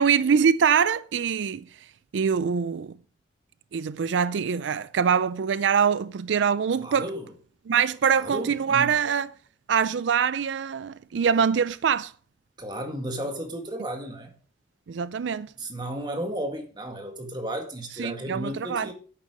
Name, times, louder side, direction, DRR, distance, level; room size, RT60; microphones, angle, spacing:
voice 1, 0.0-1.7 2.1-3.0 3.7-7.1 7.7-9.3 9.7-12.1 14.9-15.5 18.0-18.9, right 7 dB, 85° right, 0.4 m, -24 dB
voice 2, 6.8-7.2 8.1-8.9 12.6-14.3 15.6-18.9, right 1 dB, 25° right, 1.9 m, -33 dB
10.5 x 8.8 x 5.0 m
head